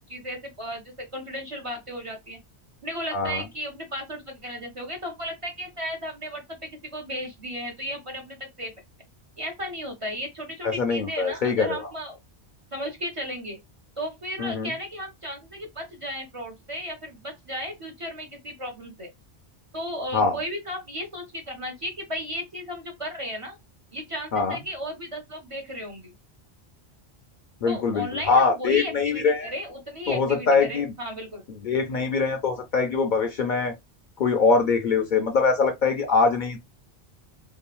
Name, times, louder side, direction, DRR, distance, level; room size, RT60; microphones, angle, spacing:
voice 1, 0.0-2.4 2.8-8.7 9.4-12.2 12.7-13.6 14.0-19.1 19.7-23.6 23.9-26.1 27.7-31.4, equal, 35° right, 0.6 m, -35 dB
voice 2, 3.1-3.4 10.6-11.9 14.4-14.7 20.1-20.4 24.3-24.6 27.6-29.5 30.1-30.9 31.6-33.7 34.2-36.6, left 4 dB, 60° left, 0.6 m, -23 dB
2.9 x 2.3 x 2.2 m
omnidirectional pair, 1.1 m